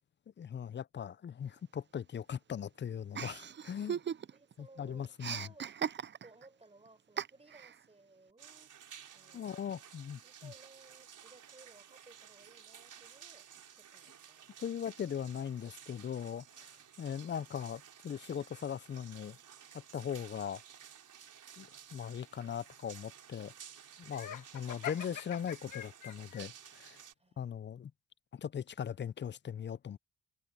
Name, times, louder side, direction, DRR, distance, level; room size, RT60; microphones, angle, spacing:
voice 1, 0.4-4.0 4.6-5.5 9.3-10.5 14.6-16.7 17.0-19.4 19.7-20.6 21.6-23.5 24.0-27.0 27.4-27.9 28.3-30.0, left 8 dB, 35° left, 0.4 m, -40 dB
Chuckle chortle, 3.1-4.5 4.8-6.4 7.2-7.7, right 8 dB, 35° right, 0.5 m, -38 dB
voice 2, 4.3-5.7 6.2-9.6 10.2-13.5 13.7-14.5 27.2-27.6, right 2 dB, 20° right, 4.3 m, -61 dB
sound 1, 8.4-27.1, right 8 dB, 75° right, 4.4 m, -54 dB
Laughter, 24.1-26.4, left 10 dB, 90° left, 1.4 m, -44 dB
cardioid pair, 110°, 31 cm